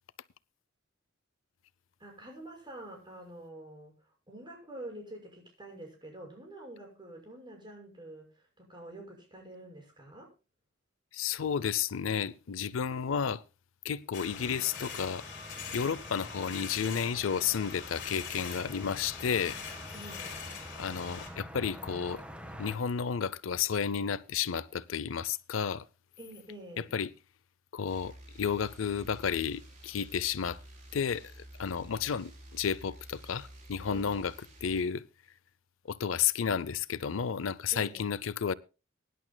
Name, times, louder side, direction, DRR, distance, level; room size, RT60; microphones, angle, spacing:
voice 1, 2.0-10.3 19.9-20.4 26.2-26.9 33.9-34.2 37.7-38.1, right 1 dB, 25° right, 6.2 m, -47 dB
voice 2, 11.1-13.4 13.8-15.3 15.7-19.6 20.8-22.2 22.6-25.8 26.8-27.1 27.7-30.6 30.9-34.3 34.6-35.0 35.9-38.5, left 7 dB, 80° left, 0.5 m, -32 dB
sound 1, 14.1-21.3, left 6 dB, 60° left, 4.1 m, -43 dB
sound 2, 14.3-22.8, equal, 5° right, 1.3 m, -47 dB
sound 3, 27.9-34.8, right 1 dB, 40° right, 4.2 m, -51 dB
23.0 x 11.0 x 2.2 m
head